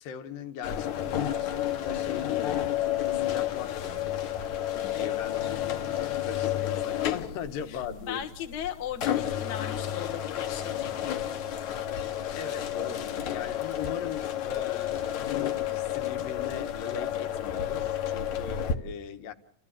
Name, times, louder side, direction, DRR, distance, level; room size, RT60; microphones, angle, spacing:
voice 1, 0.0-4.4 4.9-8.3 12.4-19.3, left 7 dB, 85° left, 2.9 m, -40 dB
sound 1, 0.6-18.8, left 10 dB, 65° left, 2.3 m, -31 dB
voice 2, 8.0-11.6, left 10 dB, 45° left, 1.4 m, -38 dB
30.0 x 14.0 x 8.7 m
omnidirectional pair, 4.0 m